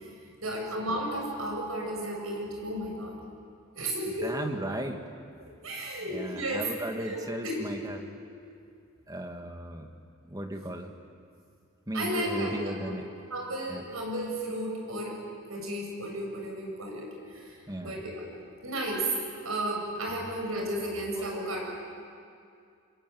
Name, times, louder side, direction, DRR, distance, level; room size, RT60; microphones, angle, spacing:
voice 1, 0.4-3.2 3.8-4.3 5.6-6.7 6.9-7.6 11.9-12.5 12.9-13.0 13.3-15.2 15.5-17.1 17.3-18.2 18.6-19.1 19.4-21.6, right 1 dB, 75° right, 0 dB, 7.7 m, -33 dB
voice 2, 4.2-5.0 6.1-8.1 9.1-9.9 10.3-10.9 11.9-13.1 13.7-13.8 17.7-18.0 20.1-20.2 21.2-21.5, right 1 dB, 15° right, 5 dB, 2.0 m, -36 dB
26.5 x 23.5 x 9.5 m, 2.4 s
head